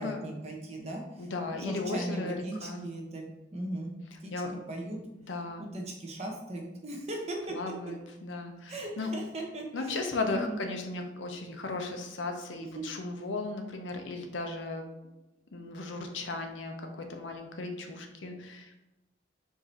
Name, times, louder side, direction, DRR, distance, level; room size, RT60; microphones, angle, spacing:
voice 1, 0.0-3.2 3.5-3.9 4.2-4.3 4.7-5.0 5.6-7.5 8.7-10.6 12.7-12.8, right 1 dB, 35° right, 0 dB, 0.8 m, -38 dB
voice 2, 1.2-2.9 4.3-4.5 5.2-5.7 7.5-9.1 9.7-14.9 15.5-18.8, left 3 dB, 80° left, 4 dB, 0.7 m, -36 dB
4.7 x 2.7 x 4.3 m, 0.98 s
head